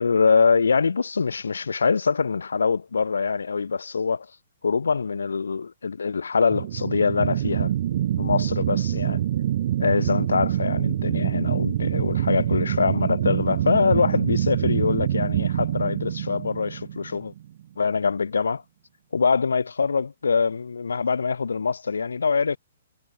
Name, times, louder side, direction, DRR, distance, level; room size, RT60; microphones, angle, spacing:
voice 1, 0.0-4.3 4.6-7.7 8.2-9.2 9.8-17.3 17.8-18.6 19.1-22.6, left 5 dB, 90° left, 2.2 m, -24 dB
sound 1, 6.5-17.4, right 11 dB, 55° right, 6.6 m, -25 dB
hypercardioid pair, 135°, 0 cm